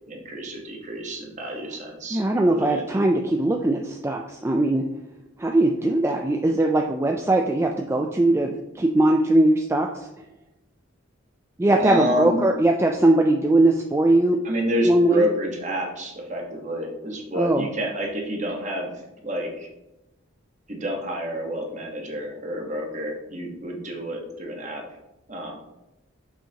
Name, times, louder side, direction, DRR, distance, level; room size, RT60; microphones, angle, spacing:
voice 1, 0.1-2.2 2.5-2.9 11.8-12.4 14.4-18.9 19.2-19.7 20.7-24.8 25.3-25.6, equal, 35° right, 1 dB, 1.3 m, -29 dB
voice 2, 2.1-4.8 5.4-10.1 11.6-14.4 14.8-15.2 17.3-17.7, right 1 dB, 15° right, 2 dB, 0.3 m, -20 dB
7.1 x 5.7 x 2.9 m, 0.94 s
head